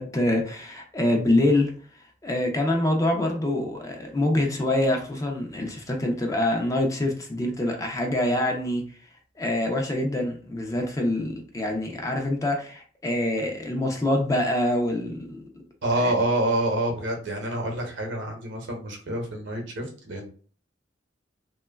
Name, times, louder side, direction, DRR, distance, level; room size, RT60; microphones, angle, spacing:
voice 1, 0.0-1.7 2.2-8.8 9.4-15.4 16.0-16.1, left 1 dB, 20° left, 2 dB, 0.4 m, -25 dB
voice 2, 15.8-20.3, right 1 dB, 80° right, 2 dB, 0.8 m, -27 dB
2.9 x 2.2 x 2.2 m, 0.42 s
head